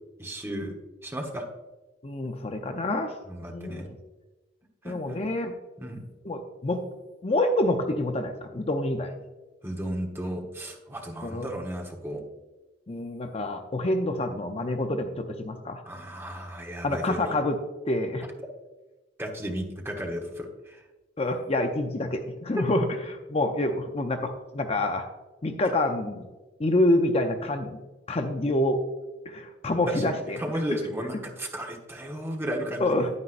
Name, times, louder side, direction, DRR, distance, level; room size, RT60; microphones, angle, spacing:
voice 1, 0.2-0.7 1.0-1.4 3.3-3.9 4.8-5.2 5.8-6.0 9.6-12.2 15.9-17.3 19.2-20.8 29.9-30.1 30.4-33.1, equal, 15° right, 1 dB, 1.2 m, -34 dB
voice 2, 2.0-3.2 3.5-3.9 4.8-5.6 6.2-6.8 7.2-9.1 11.2-11.5 12.9-15.8 16.8-17.6 17.9-18.2 21.2-25.1 25.4-26.3 26.6-27.8 28.1-28.8 29.3-30.4 32.8-33.1, left 1 dB, 35° left, 6 dB, 0.6 m, -27 dB
9.7 x 9.6 x 2.6 m, 1.2 s
head